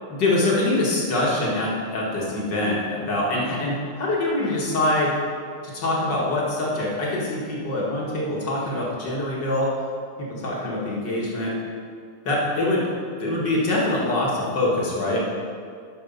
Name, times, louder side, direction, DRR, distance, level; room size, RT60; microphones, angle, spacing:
voice 1, 0.1-5.1 5.6-9.7 10.2-11.5 12.2-12.9 13.2-15.3, left 2 dB, 45° left, -5 dB, 1.4 m, -24 dB
11.0 x 6.3 x 5.5 m, 2.2 s
omnidirectional pair, 4.4 m